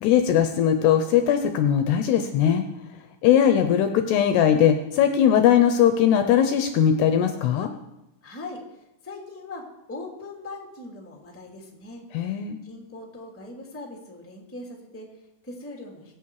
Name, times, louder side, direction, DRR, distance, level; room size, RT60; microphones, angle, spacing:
voice 1, 0.0-2.6 3.2-7.7 12.1-12.6, left 9 dB, 75° left, 7 dB, 2.6 m, -20 dB
voice 2, 8.2-12.0 12.6-16.2, left 2 dB, 5° left, -1 dB, 1.6 m, -40 dB
23.0 x 8.6 x 4.8 m, 0.92 s
omnidirectional pair, 5.3 m